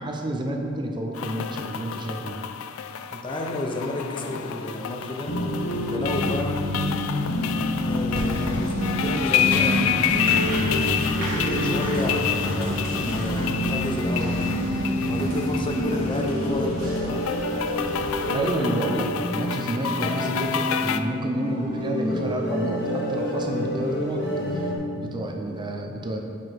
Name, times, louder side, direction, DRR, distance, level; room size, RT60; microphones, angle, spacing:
voice 1, 0.0-2.4 18.3-26.2, right 1 dB, 20° right, 2 dB, 0.5 m, -30 dB
sound 1, 1.1-21.0, left 9 dB, 75° left, 0.3 m, -30 dB
voice 2, 3.1-5.4 5.8-6.6 7.9-10.5 11.3-14.5 15.1-17.3, left 1 dB, 25° left, 1 dB, 0.6 m, -31 dB
sound 2, 5.3-24.8, left 1 dB, 55° left, 1.1 m, -27 dB
Applause, 8.1-18.3, right 1 dB, 45° right, 1.4 m, -35 dB
5.8 x 4.9 x 4.6 m, 2.4 s
head